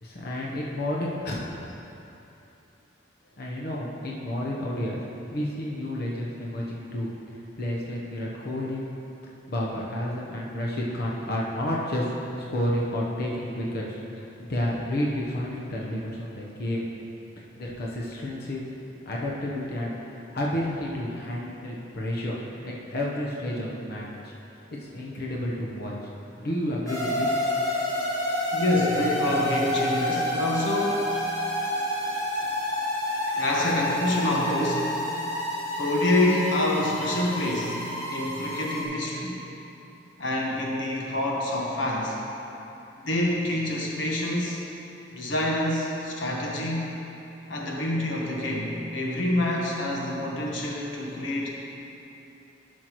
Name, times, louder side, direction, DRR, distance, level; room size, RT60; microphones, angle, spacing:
voice 1, 0.0-1.5 3.4-5.0 5.3-7.1 7.6-8.8 9.5-14.0 14.4-16.9 17.6-18.7 19.1-19.9 20.3-22.3 22.6-24.3 24.7-25.9 26.4-27.4, left 1 dB, 60° left, -4 dB, 0.9 m, -30 dB
sound 1, 26.9-38.8, left 1 dB, 20° left, 1.8 m, -29 dB
voice 2, 28.5-31.1 33.3-35.0 35.8-37.8 38.1-39.4 40.2-42.2 43.0-44.6 45.1-47.0 47.5-51.5, left 1 dB, 90° left, -2 dB, 1.2 m, -27 dB
11.5 x 6.4 x 3.1 m, 2.9 s
head